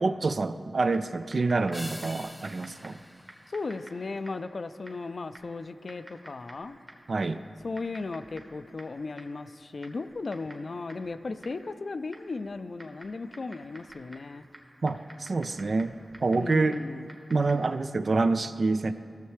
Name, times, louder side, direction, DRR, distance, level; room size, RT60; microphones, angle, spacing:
voice 1, 0.0-3.0 7.1-7.4 14.8-16.8 17.3-18.9, right 3 dB, 65° right, 11 dB, 0.3 m, -27 dB
Typing, 0.9-17.8, right 1 dB, 35° right, 1.4 m, -52 dB
sound 1, 1.7-4.4, left 1 dB, 10° left, 0.5 m, -45 dB
voice 2, 3.5-6.8 7.6-14.5 16.3-17.1, left 3 dB, 65° left, 11 dB, 0.3 m, -36 dB
14.0 x 6.6 x 3.2 m, 2.3 s
cardioid pair, 40°, 0 cm